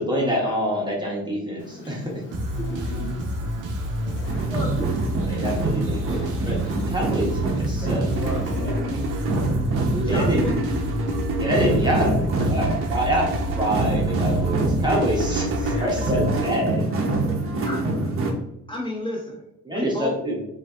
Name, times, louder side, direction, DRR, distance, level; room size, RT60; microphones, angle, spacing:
voice 1, 0.0-2.2 5.3-8.7 10.1-10.4 11.4-12.1 12.5-13.3 13.6-16.8 19.6-20.4, equal, 15° right, -3 dB, 0.8 m, -26 dB
Fire, 1.6-8.7, left 1 dB, 40° left, 0.8 m, -44 dB
sound 1, 2.3-16.9, right 1 dB, 90° right, 0.6 m, -29 dB
voice 2, 2.8-3.4 3.9-4.0 7.8-9.3 11.5-12.9 15.6-17.7, left 1 dB, 65° left, -2 dB, 1.2 m, -35 dB
sound 2, 4.3-18.3, right 2 dB, 45° right, 0.7 m, -26 dB
voice 3, 4.5-5.0 9.9-11.0 17.6-18.1 18.7-19.4 19.7-20.1, left 1 dB, 15° left, -3 dB, 1.2 m, -31 dB
3.4 x 2.6 x 2.3 m, 0.80 s
cardioid pair, 90°, 30 cm